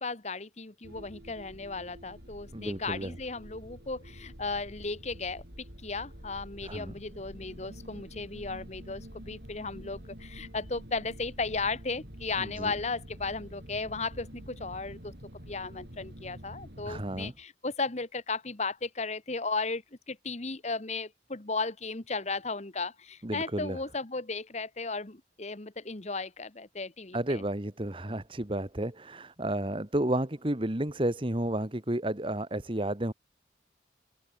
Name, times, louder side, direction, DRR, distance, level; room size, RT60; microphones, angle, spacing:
voice 1, 0.0-15.1 15.5-27.4, left 3 dB, 40° left, 1.3 m, -35 dB
sound 1, 0.8-17.3, equal, 60° right, 7.2 m, -47 dB
voice 2, 2.5-3.1 6.6-6.9 12.4-12.7 16.8-17.3 23.2-23.8 27.1-33.1, right 1 dB, 30° right, 1.5 m, -32 dB
head